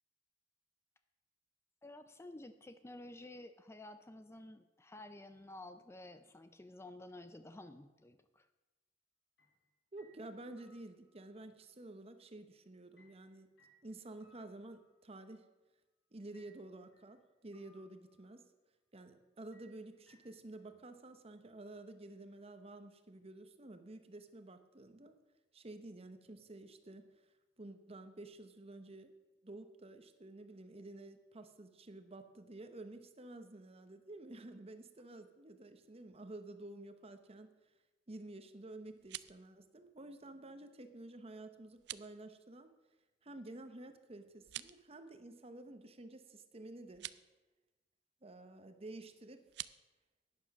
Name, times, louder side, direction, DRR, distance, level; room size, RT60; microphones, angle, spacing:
voice 1, 1.8-8.5, left 1 dB, 15° left, 10 dB, 0.4 m, -52 dB
Horror piano, 9.4-9.6 10.0-11.4 13.0-15.3 16.3-17.2 17.5-18.3 19.5-20.6, equal, 80° left, 4.1 m, -70 dB
voice 2, 9.9-13.5 13.8-15.5 16.1-18.5 18.9-25.2 25.5-27.1 27.6-29.1 29.4-37.5 38.1-42.7 43.2-47.1 48.2-49.5, right 2 dB, 35° right, 9 dB, 0.9 m, -51 dB
sound 1, 38.9-39.4 41.7-42.1 44.4-44.9 46.9-47.2 49.5-49.8, right 15 dB, 70° right, 0.4 m, -47 dB
11.0 x 9.5 x 6.0 m, 1.1 s
head